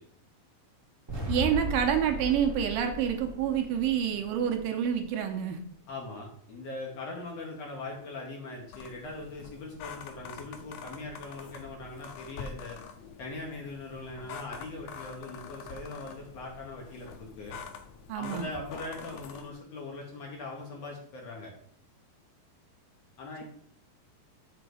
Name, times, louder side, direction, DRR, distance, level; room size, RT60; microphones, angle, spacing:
sound 1, 1.1-5.2, equal, 15° right, 0.9 m, -37 dB
voice 1, 1.3-5.6 18.1-18.5, right 8 dB, 80° right, 5 dB, 2.4 m, -28 dB
voice 2, 5.9-12.8 13.2-17.6 18.1-21.5 23.2-23.4, left 2 dB, 60° left, -1 dB, 2.0 m, -41 dB
sound 2, 8.7-19.5, left 6 dB, 85° left, 1.6 m, -46 dB
7.1 x 3.9 x 6.1 m, 0.65 s
omnidirectional pair, 4.1 m